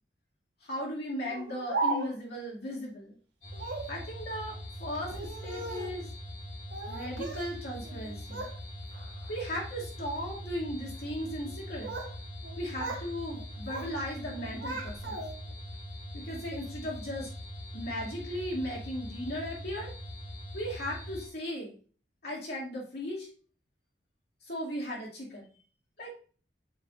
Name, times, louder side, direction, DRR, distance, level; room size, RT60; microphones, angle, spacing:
voice 1, 0.6-3.1 3.9-6.1 6.9-8.4 9.3-11.9 12.6-15.2 16.1-17.3 17.7-19.9 20.5-21.7 22.2-23.3 24.5-25.5 26.0-26.1, equal, 65° left, -4 dB, 2.3 m, -37 dB
Speech, 1.3-2.4 3.5-4.0 5.0-6.0 6.7-7.5 7.8-8.6 8.9-9.3 10.0-10.3 11.4-12.2 12.4-13.1 13.4-13.9 14.3-15.5, right 3 dB, 85° right, 1.4 m, -37 dB
sound 1, 3.4-21.3, equal, 45° left, 2.1 m, -42 dB
7.4 x 5.8 x 2.5 m, 0.41 s
head